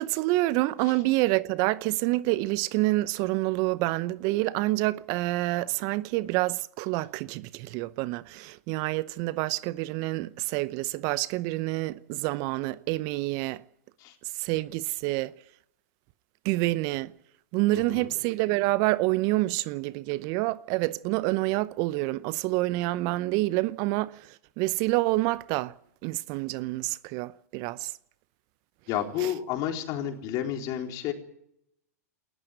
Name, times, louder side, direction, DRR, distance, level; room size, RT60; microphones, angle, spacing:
voice 1, 0.0-13.6 14.4-15.3 16.4-17.1 17.5-25.7 26.0-27.9 29.2-29.3, right 19 dB, 45° right, 0.7 m, -27 dB
voice 2, 17.7-18.1 28.9-31.1, left 10 dB, 45° left, 4.0 m, -31 dB
19.5 x 14.5 x 9.2 m
hypercardioid pair, 110°, 9 cm